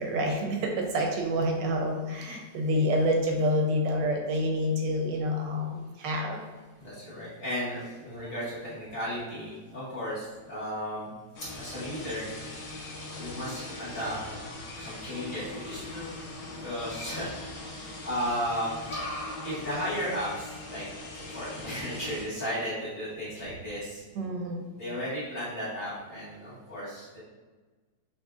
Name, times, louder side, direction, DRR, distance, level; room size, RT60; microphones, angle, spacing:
voice 1, 0.0-6.4 8.2-8.3 24.1-24.6, equal, 75° right, 2 dB, 1.2 m, -28 dB
voice 2, 6.8-11.1 11.6-12.3 13.1-14.2 14.8-16.1 16.6-17.3 18.0-18.7 19.4-20.8 21.3-24.0 24.8-27.2, equal, 30° left, -10 dB, 1.7 m, -34 dB
sound 1, 11.3-22.2, left 2 dB, 70° left, 0.6 m, -40 dB
5.5 x 2.6 x 2.4 m, 1.3 s
omnidirectional pair, 2.0 m